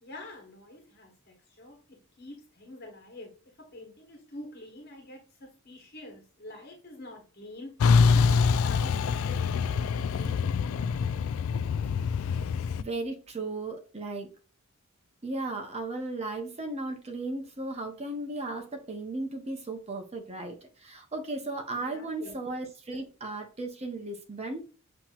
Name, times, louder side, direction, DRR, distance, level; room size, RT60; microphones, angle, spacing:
voice 1, 0.0-7.8 8.1-10.8 21.7-22.3 22.9-23.0, left 1 dB, 45° left, 1 dB, 1.3 m, -47 dB
Truck, 7.8-12.8, left 5 dB, 70° left, 0.3 m, -25 dB
voice 2, 12.8-14.3 15.2-24.6, right 2 dB, 30° right, 4 dB, 0.8 m, -36 dB
7.4 x 2.9 x 2.4 m, 0.36 s
head